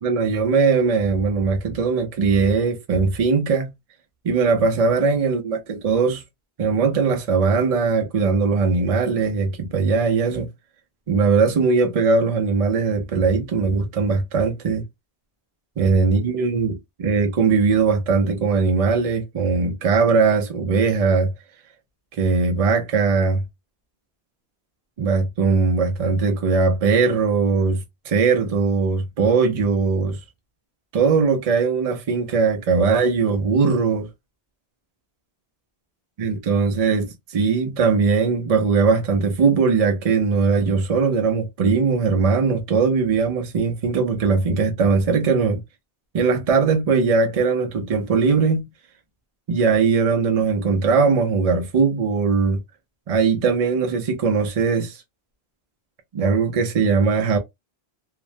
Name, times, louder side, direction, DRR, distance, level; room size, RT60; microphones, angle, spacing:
voice 1, 0.0-3.7 4.2-6.2 6.6-10.5 11.1-14.8 15.8-21.3 22.2-23.4 25.0-30.2 30.9-34.1 36.2-45.6 46.1-48.7 49.5-52.6 53.1-55.0 56.1-57.4, right 4 dB, 55° right, 0.4 m, -20 dB
2.4 x 2.0 x 2.6 m
omnidirectional pair, 1.1 m